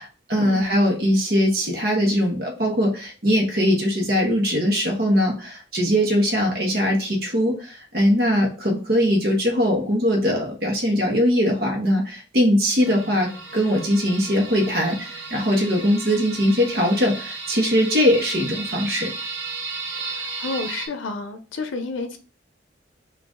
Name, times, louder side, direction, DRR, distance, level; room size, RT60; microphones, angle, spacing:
voice 1, 0.0-19.1, equal, 50° right, 1.1 m, -21 dB
sound 1, 12.8-20.9, right 4 dB, 75° right, 0.9 m, -34 dB
voice 2, 20.0-22.2, left 3 dB, 85° left, 0.5 m, -31 dB
3.9 x 2.5 x 3.6 m
head